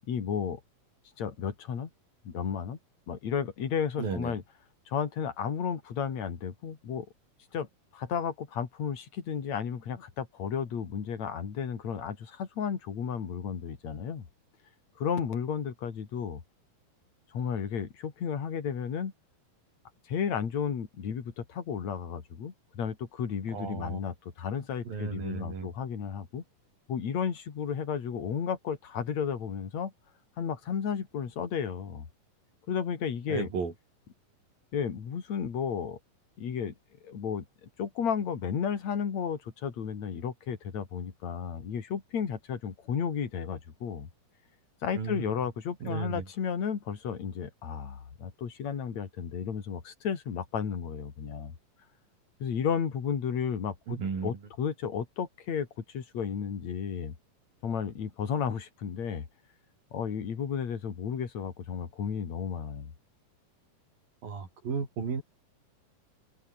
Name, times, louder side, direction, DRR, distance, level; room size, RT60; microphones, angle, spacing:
voice 1, 0.1-0.6 1.2-1.9 2.3-2.8 3.1-4.4 4.9-7.1 7.5-7.7 7.9-14.3 15.0-16.4 17.3-19.1 20.1-26.4 26.9-29.9 30.4-32.0 32.7-33.5 34.7-36.0 36.4-36.7 37.0-44.1 44.8-51.5 52.4-57.1 57.6-59.3 59.9-62.9, left 7 dB, 50° left, 3.9 m, -33 dB
voice 2, 4.0-4.4 23.5-24.0 24.8-25.7 33.3-33.7 44.9-45.3 45.8-46.3 53.9-54.4 64.2-65.2, right 5 dB, 70° right, 6.6 m, -34 dB
omnidirectional pair, 4.2 m